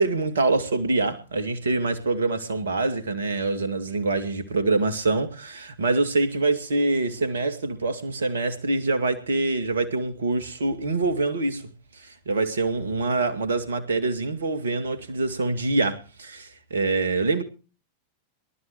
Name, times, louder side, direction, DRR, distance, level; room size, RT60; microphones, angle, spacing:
voice 1, 0.0-11.7 12.0-17.4, right 3 dB, 70° right, 2.4 m, -25 dB
24.0 x 13.0 x 3.1 m
figure-of-eight pair, 90°, 0 cm